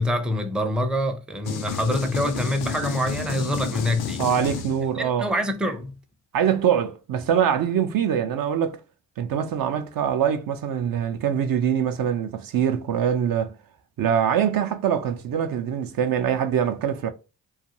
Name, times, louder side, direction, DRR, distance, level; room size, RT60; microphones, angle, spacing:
voice 1, 0.0-4.2 5.0-5.9, left 1 dB, ahead, 0.5 m, -25 dB
sound 1, 1.4-5.1, left 7 dB, 70° left, 0.5 m, -32 dB
voice 2, 4.2-5.3 6.3-8.8 9.2-13.5 14.0-17.1, right 8 dB, 55° right, 0.5 m, -23 dB
2.4 x 2.2 x 2.8 m
supercardioid pair, 45°, 41 cm